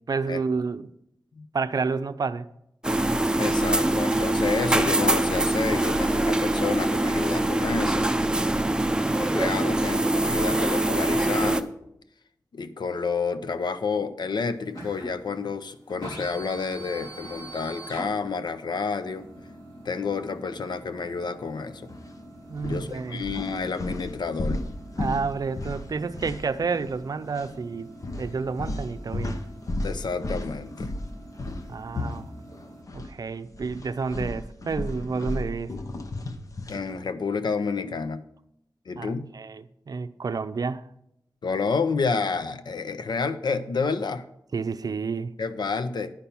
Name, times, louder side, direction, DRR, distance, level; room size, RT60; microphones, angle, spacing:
voice 1, 0.1-0.9 1.5-2.5 22.5-23.2 25.0-29.4 31.7-32.3 32.9-35.7 39.0-40.9 44.5-45.3, right 4 dB, 60° right, 0.5 m, -30 dB
sound 1, 2.8-11.6, right 1 dB, 10° right, 0.5 m, -23 dB
voice 2, 3.4-8.1 9.1-11.7 12.5-19.3 19.8-21.9 22.6-24.6 29.8-30.9 36.7-38.3 38.9-39.3 41.4-44.3 45.4-46.1, left 5 dB, 85° left, 0.7 m, -29 dB
sound 2, 14.2-32.8, right 1 dB, 65° left, 3.8 m, -45 dB
sound 3, 21.9-22.1 22.5-27.0 27.3-27.5 28.0-33.1 33.4-36.9, left 1 dB, 50° left, 0.9 m, -34 dB
10.0 x 5.8 x 7.0 m
wide cardioid pair, 105°, 7 cm